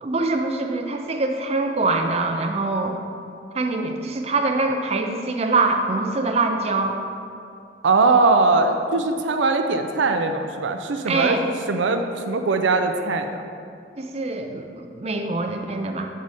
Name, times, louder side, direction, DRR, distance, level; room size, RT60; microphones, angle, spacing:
voice 1, 0.0-3.0 3.5-7.0 11.1-11.5 14.0-16.1, right 3 dB, 35° right, 4 dB, 0.5 m, -24 dB
voice 2, 7.8-11.4 11.7-13.4, right 3 dB, 85° right, 6 dB, 0.5 m, -20 dB
7.4 x 4.9 x 4.1 m, 2.4 s
head